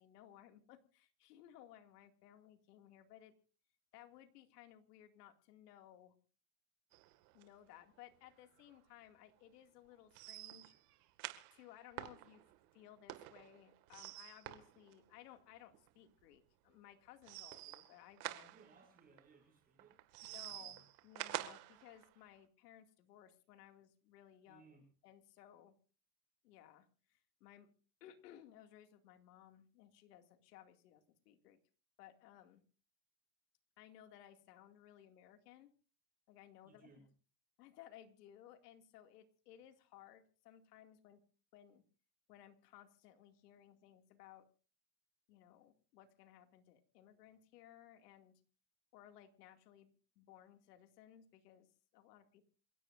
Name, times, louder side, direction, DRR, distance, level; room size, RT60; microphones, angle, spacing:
voice 1, 0.0-3.3 3.9-6.1 7.3-10.7 11.5-12.4 12.7-18.5 20.2-25.8 26.4-27.7 28.0-31.6 32.0-32.6 33.8-35.7 36.3-37.1 37.6-41.2 41.5-41.8 42.3-44.5 45.3-48.4 48.9-52.5, left 11 dB, 90° left, 7 dB, 2.5 m, -60 dB
sound 1, 6.9-7.5 7.8-7.9 8.2-8.3 8.7-8.8 10.1-15.4 15.7-15.9 17.2-19.2 19.8-22.1, right 17 dB, 80° right, 2.1 m, -48 dB
voice 2, 18.4-20.0 20.3-20.8 24.5-24.8 36.6-37.1, right 4 dB, 20° right, 3 dB, 6.5 m, -65 dB
28.0 x 16.5 x 2.6 m, 0.38 s
supercardioid pair, 130°, 46 cm